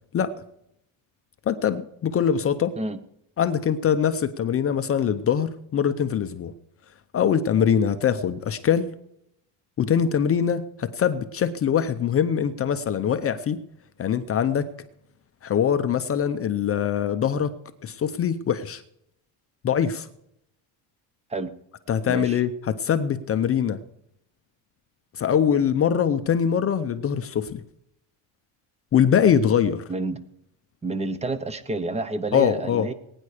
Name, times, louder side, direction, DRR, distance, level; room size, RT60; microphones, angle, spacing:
voice 1, 1.5-2.7 3.4-6.5 7.1-8.9 9.8-13.6 14.0-14.7 15.4-17.5 17.8-18.8 19.6-20.1 21.9-23.8 25.1-27.6 28.9-29.8 32.3-32.9, left 8 dB, 30° left, 10 dB, 0.6 m, -23 dB
voice 2, 22.1-22.4 29.9-30.2 30.8-32.9, right 2 dB, 15° right, 12 dB, 0.8 m, -29 dB
20.5 x 9.6 x 4.9 m, 0.77 s
cardioid pair, 160°, 47 cm